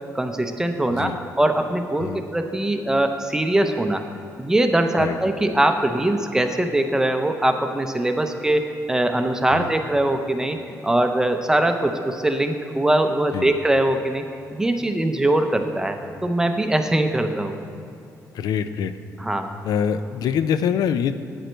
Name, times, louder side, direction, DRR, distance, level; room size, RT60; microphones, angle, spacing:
voice 1, 0.1-4.0 4.4-14.2 14.5-17.6 19.2-19.5, right 1 dB, 10° right, 6 dB, 0.5 m, -22 dB
voice 2, 18.3-18.9 19.6-21.1, left 8 dB, 80° left, 12 dB, 0.4 m, -24 dB
8.8 x 8.0 x 4.4 m, 2.6 s
cardioid pair, 160°, 6 cm